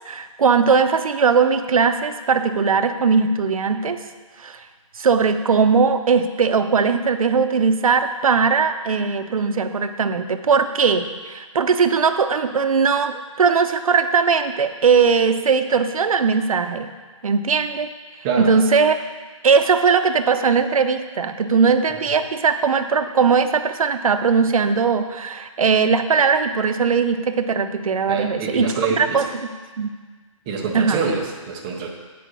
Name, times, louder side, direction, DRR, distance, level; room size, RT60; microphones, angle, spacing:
voice 1, 0.1-4.0 4.4-4.6 5.0-16.9 17.2-17.9 18.4-18.9 19.4-29.3 29.8-29.9 30.7-31.1, right 5 dB, 80° right, 8 dB, 0.7 m, -19 dB
voice 2, 28.1-29.2 30.5-31.9, right 5 dB, 10° right, -2 dB, 0.4 m, -25 dB
8.5 x 4.9 x 6.2 m, 1.4 s
hypercardioid pair, 170°, 18 cm